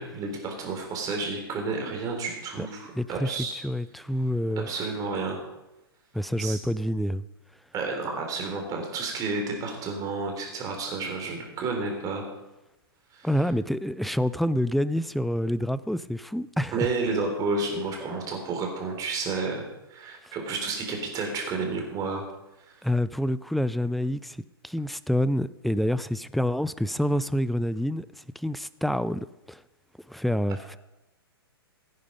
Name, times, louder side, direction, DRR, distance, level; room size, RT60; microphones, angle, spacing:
voice 1, 0.0-3.6 4.7-5.4 6.4-6.6 7.7-12.2 13.1-13.3 16.7-22.2 22.7-22.8, right 3 dB, 25° right, 2 dB, 3.9 m, -31 dB
voice 2, 2.9-4.7 6.1-7.2 13.2-16.9 20.3-20.4 22.8-29.6 30.1-30.8, equal, ahead, 17 dB, 0.3 m, -27 dB
16.0 x 9.6 x 5.2 m, 0.98 s
figure-of-eight pair, 110°, 13 cm